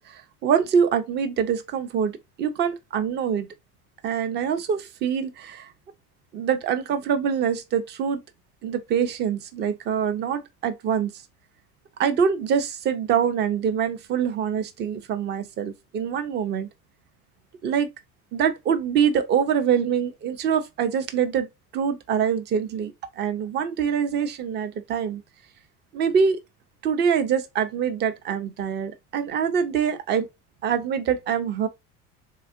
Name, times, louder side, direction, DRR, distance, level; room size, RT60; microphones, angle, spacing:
voice 1, 0.0-2.1 2.4-3.5 4.0-5.7 6.3-8.2 8.6-11.1 12.0-16.7 17.6-17.9 18.3-21.5 21.7-25.2 25.9-26.4 26.8-30.3 30.6-31.7, right 7 dB, 25° right, 0.5 m, -24 dB
3.6 x 2.4 x 2.4 m
figure-of-eight pair, 65°, 45 cm